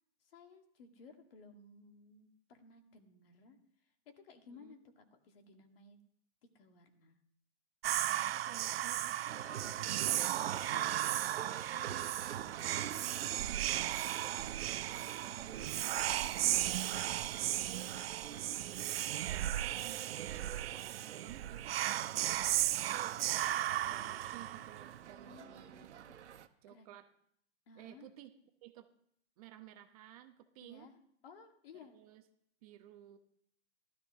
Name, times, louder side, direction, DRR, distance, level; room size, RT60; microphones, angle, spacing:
voice 1, 0.2-6.0 6.4-7.2 15.2-15.7 25.2-26.9 27.7-28.1 30.6-30.9 31.2-31.9, left 4 dB, 55° left, 5 dB, 2.1 m, -58 dB
voice 2, 4.5-4.8 8.3-9.8 10.2-12.9 13.3-15.0 15.3-15.9 16.4-20.6 21.0-26.0 26.6-27.1 27.8-28.3 28.6-28.9 29.4-30.9 31.8-32.2 32.6-33.2, right 13 dB, 35° right, 7 dB, 1.0 m, -55 dB
Whispering, 7.8-25.0, right 13 dB, 60° right, 0.5 m, -35 dB
sound 1, 9.3-26.5, right 9 dB, 80° right, 1.1 m, -47 dB
15.5 x 13.0 x 3.7 m, 0.67 s
hypercardioid pair, 155°, 34 cm